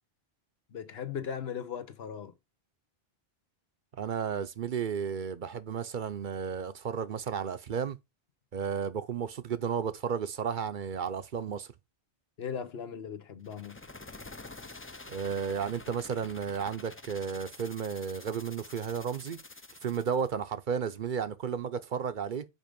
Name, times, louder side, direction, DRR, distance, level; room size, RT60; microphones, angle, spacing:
voice 1, 0.7-2.3 12.4-13.8, left 7 dB, 80° left, 1.2 m, -38 dB
voice 2, 4.0-8.0 8.5-11.7 15.1-19.4 19.8-22.4, right 7 dB, 55° right, 0.7 m, -33 dB
sound 1, 13.4-20.3, left 2 dB, 20° left, 0.4 m, -48 dB
5.4 x 5.0 x 5.1 m
omnidirectional pair, 1.0 m